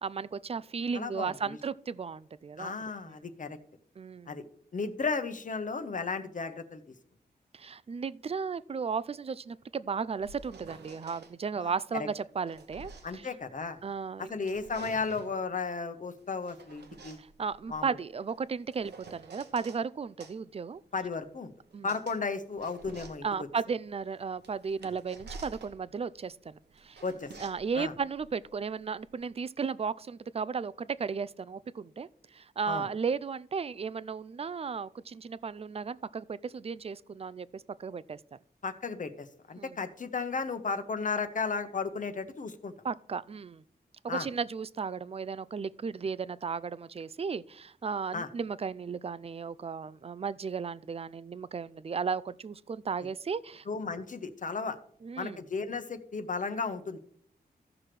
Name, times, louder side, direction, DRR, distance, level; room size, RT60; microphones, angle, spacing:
voice 1, 0.0-2.7 3.0-3.2 4.0-4.4 7.5-13.3 13.8-14.3 17.2-20.8 21.7-21.9 23.2-27.0 27.4-38.2 39.6-39.8 42.8-43.6 44.0-53.6 55.0-55.4, right 5 dB, 35° right, 0.4 m, -35 dB
voice 2, 0.9-1.6 2.6-3.6 4.3-4.4 4.7-6.8 11.6-12.1 13.0-13.8 14.2-17.2 17.7-17.9 20.9-21.5 21.8-23.3 27.0-27.3 27.7-27.9 32.7-32.9 38.6-42.7 44.1-44.3 48.1-48.3 53.7-54.8 55.2-57.0, left 4 dB, 50° left, 1.0 m, -34 dB
sound 1, 9.9-11.3 12.1-13.9 14.3-15.4 16.2-19.8 20.2-29.3, right 4 dB, 85° right, 1.0 m, -51 dB
15.0 x 6.0 x 3.3 m
wide cardioid pair, 100°, 17 cm